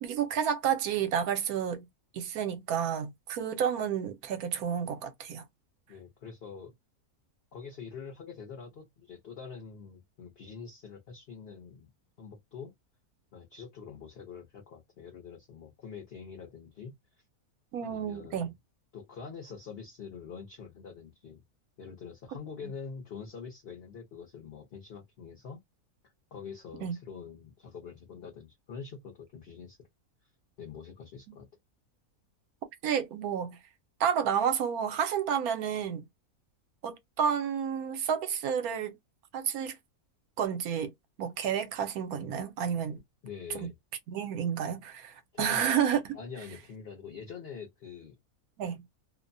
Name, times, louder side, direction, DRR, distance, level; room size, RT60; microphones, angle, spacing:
voice 1, 0.0-1.9 2.1-5.4 17.7-18.5 26.8-27.0 31.3-31.4 32.8-33.6 34.0-36.1 36.8-39.0 39.3-39.8 40.4-40.9 41.2-43.0 43.5-43.7 44.1-46.1 48.6-48.8, right 8 dB, 75° right, 1.1 m, -30 dB
voice 2, 5.9-6.7 7.5-11.9 12.2-12.7 13.3-16.9 17.8-18.5 18.9-21.4 21.8-25.6 26.0-29.8 30.6-31.5 43.2-43.7 45.3-45.6 46.1-48.2, left 6 dB, 50° left, 0.8 m, -45 dB
2.6 x 2.1 x 2.5 m
omnidirectional pair, 1.6 m